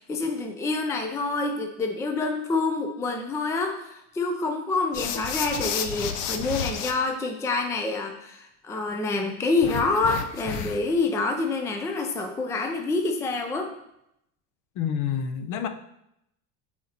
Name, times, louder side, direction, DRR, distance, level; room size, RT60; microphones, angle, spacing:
voice 1, 0.0-13.7, left 3 dB, 5° left, 3 dB, 0.5 m, -27 dB
sound 1, 4.9-6.9 9.6-11.0, left 8 dB, 80° left, 1.0 m, -31 dB
voice 2, 14.8-15.7, left 8 dB, 45° left, 9 dB, 0.7 m, -28 dB
11.5 x 4.3 x 4.3 m, 0.81 s
supercardioid pair, 140°, 44 cm